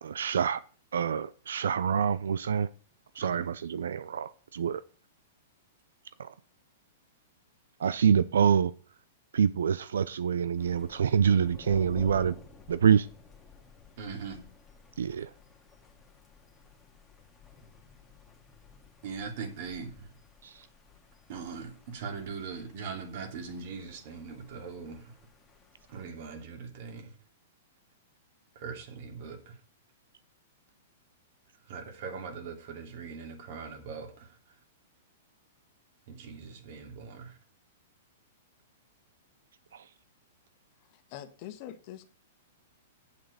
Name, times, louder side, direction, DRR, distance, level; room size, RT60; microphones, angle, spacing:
voice 1, 0.0-0.6 0.9-2.7 3.1-4.8 6.2-6.3 7.8-8.7 9.3-12.3 12.7-13.1 15.0-15.3 20.4-20.7 39.7-39.9, right 7 dB, 75° right, 0.5 m, -26 dB
Thunder, 10.6-26.1, left 5 dB, 15° left, 2.2 m, -52 dB
voice 2, 14.0-14.4 19.0-20.1 21.3-25.1 25.9-27.1 28.5-29.6 31.7-34.4 36.1-37.4, right 5 dB, 55° right, 3.0 m, -41 dB
voice 3, 40.8-42.0, left 11 dB, 50° left, 1.4 m, -44 dB
8.5 x 7.7 x 6.7 m
hypercardioid pair, 115°, 0 cm